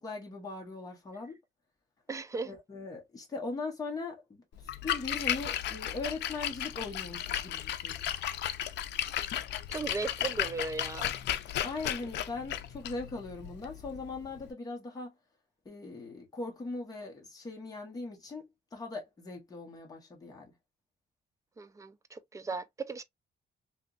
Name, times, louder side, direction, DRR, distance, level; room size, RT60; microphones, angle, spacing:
voice 1, 0.0-1.3 2.4-4.4 4.8-8.0 11.6-15.1 15.6-20.5, left 3 dB, 20° left, 1.1 m, -40 dB
voice 2, 2.1-2.5 9.7-11.1 21.6-23.0, right 3 dB, 20° right, 0.3 m, -37 dB
Splash splatter, 4.6-14.5, left 11 dB, 85° left, 0.4 m, -35 dB
3.3 x 2.9 x 2.4 m
cardioid pair, 165°, 18 cm